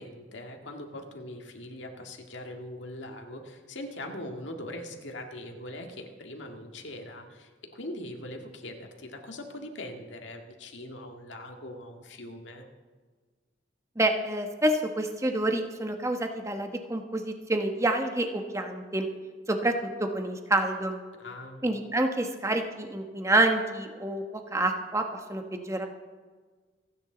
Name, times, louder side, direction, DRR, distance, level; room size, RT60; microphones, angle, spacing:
voice 1, 0.0-12.7 21.2-21.6, left 1 dB, 85° left, 3 dB, 1.9 m, -41 dB
voice 2, 14.0-19.1 19.5-21.0 21.6-24.2 24.5-25.9, right 1 dB, 15° right, 5 dB, 1.1 m, -28 dB
27.5 x 9.7 x 3.9 m, 1.5 s
head